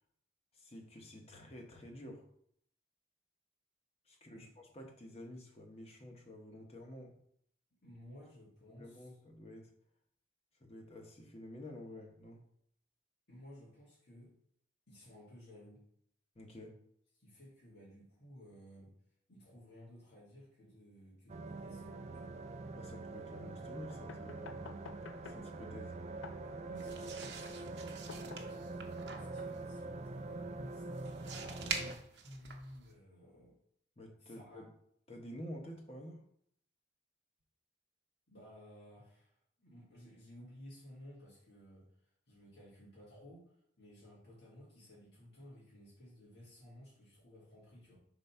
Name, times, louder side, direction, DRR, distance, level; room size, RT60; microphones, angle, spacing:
voice 1, 0.5-2.3 4.1-7.1 8.7-9.7 10.6-12.4 16.3-16.7 22.7-24.8 25.2-26.0 34.0-34.7 35.1-36.2, left 1 dB, 30° left, 2 dB, 1.0 m, -50 dB
voice 2, 7.8-9.1 13.3-14.3 14.9-15.8 17.2-18.9 19.3-22.4 26.4-33.6 34.2-34.6 38.3-41.9 42.3-48.0, equal, 60° left, -8 dB, 2.1 m, -56 dB
sound 1, 21.3-32.0, right 3 dB, 35° right, 0.4 m, -44 dB
sound 2, 23.9-28.9, left 5 dB, 85° left, 0.4 m, -53 dB
sound 3, 26.8-32.9, right 6 dB, 60° right, 0.8 m, -46 dB
4.5 x 4.0 x 5.6 m, 0.68 s
head